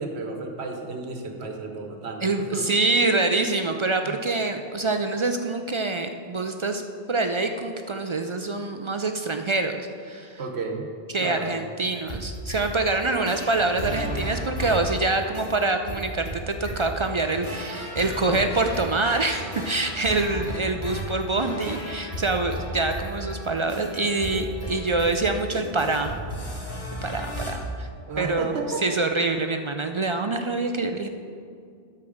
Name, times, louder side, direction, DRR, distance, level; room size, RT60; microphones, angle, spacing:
voice 1, 0.0-2.7 4.0-4.2 10.4-10.9 11.2-11.5 18.2-18.5 28.1-28.8, right 3 dB, 85° right, 3 dB, 1.3 m, -32 dB
voice 2, 2.2-6.8 7.1-10.4 11.1-26.1 27.0-27.9 28.2-28.5 28.8-31.1, right 3 dB, 50° right, 6 dB, 0.3 m, -25 dB
sound 1, 11.8-27.5, equal, 75° left, 2.5 m, -34 dB
12.0 x 4.5 x 6.3 m, 2.3 s
omnidirectional pair, 1.1 m